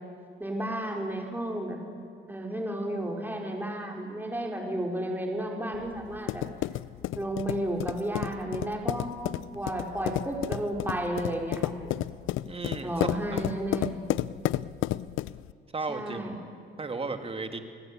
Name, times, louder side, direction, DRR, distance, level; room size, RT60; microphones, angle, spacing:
voice 1, 0.4-1.8 2.3-6.4 7.1-9.1 9.5-11.9 12.8-14.0 15.9-16.4, right 1 dB, 10° right, 1 dB, 4.8 m, -32 dB
sound 1, 5.7-15.5, left 15 dB, 85° left, 0.6 m, -32 dB
voice 2, 12.4-12.9 13.3-13.4 15.7-16.3 16.8-17.6, right 3 dB, 30° right, 6 dB, 2.5 m, -34 dB
29.5 x 19.0 x 8.9 m, 2.3 s
cardioid pair, 90°, 20 cm